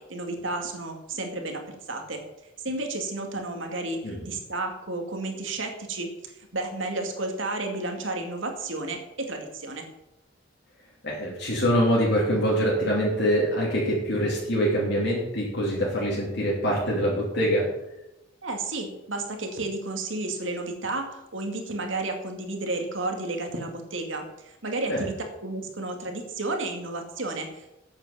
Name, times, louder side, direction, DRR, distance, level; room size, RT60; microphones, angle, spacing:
voice 1, 0.1-2.2 2.6-9.9 18.4-25.1 25.4-27.6, right 2 dB, 80° right, 3 dB, 2.3 m, -32 dB
voice 2, 11.0-17.7 24.9-25.1, equal, 60° left, -5 dB, 3.1 m, -24 dB
9.0 x 8.4 x 7.4 m, 0.92 s
head